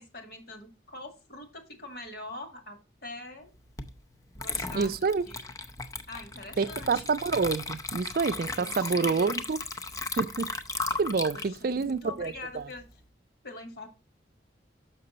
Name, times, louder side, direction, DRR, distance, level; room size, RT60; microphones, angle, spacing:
voice 1, 0.0-3.5 4.3-5.4 6.1-7.1 8.5-9.5 11.3-13.0 13.4-13.9, left 2 dB, 55° left, 1.9 m, -44 dB
Water / Liquid, 3.8-3.9 4.4-12.9, left 3 dB, 20° left, 0.6 m, -36 dB
voice 2, 4.7-5.2 6.6-9.6 10.2-10.5 11.0-12.6, right 4 dB, 50° right, 0.4 m, -28 dB
6.7 x 6.0 x 3.9 m
head